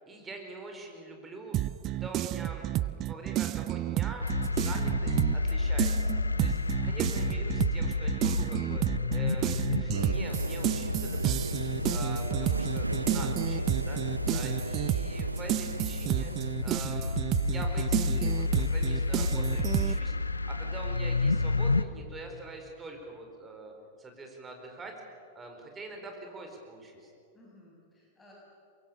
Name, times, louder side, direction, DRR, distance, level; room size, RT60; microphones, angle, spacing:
voice 1, 0.1-6.6 6.8-8.8 9.1-16.3 16.6-20.1 20.5-23.7 24.0-24.9 25.3-27.1, right 3 dB, 15° right, 3 dB, 4.5 m, -44 dB
sound 1, 1.5-5.5 5.8-20.0, right 14 dB, 35° right, 0.5 m, -31 dB
sound 2, 4.2-21.8, left 3 dB, 80° left, 0.6 m, -31 dB
voice 2, 6.7-7.2 27.3-28.3, left 2 dB, 15° left, -4 dB, 6.0 m, -57 dB
sound 3, 9.9-16.6, right 2 dB, 85° right, 0.5 m, -37 dB
24.0 x 22.5 x 7.0 m, 2.4 s
figure-of-eight pair, 95°, 0 cm